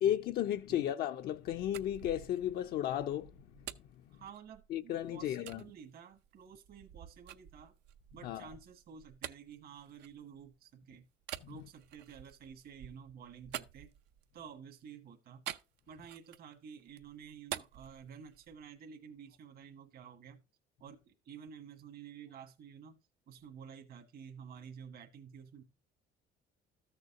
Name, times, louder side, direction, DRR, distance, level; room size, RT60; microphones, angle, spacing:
voice 1, 0.0-3.3 4.7-5.6 8.2-8.5, left 11 dB, 65° left, 0.4 m, -34 dB
sound 1, 1.3-4.8 5.5-5.6 6.2-10.6 11.2-14.4 15.5-16.5 16.9-18.7, right 11 dB, 90° right, 0.6 m, -48 dB
voice 2, 4.1-7.7 8.1-11.1 11.5-13.9 14.3-15.4 15.9-20.4 20.8-23.0 23.3-25.6, right 7 dB, 65° right, 1.5 m, -51 dB
13.5 x 6.6 x 2.5 m
cardioid pair, 110°, 17 cm